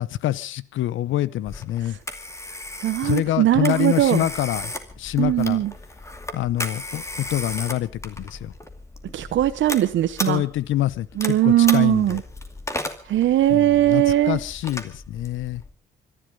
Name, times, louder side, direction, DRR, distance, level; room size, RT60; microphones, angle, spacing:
voice 1, 0.0-2.0 3.0-4.7 5.0-5.6 6.3-8.5 10.3-12.2 13.5-15.6, left 13 dB, 80° left, 20 dB, 0.9 m, -26 dB
Telephone, 1.5-15.7, left 1 dB, 15° left, 2.4 m, -35 dB
voice 2, 2.8-4.3 5.2-5.7 9.1-10.4 11.2-12.2 13.1-14.4, right 13 dB, 70° right, 11 dB, 0.9 m, -19 dB
24.0 x 11.0 x 5.3 m, 0.39 s
cardioid pair, 90°, 20 cm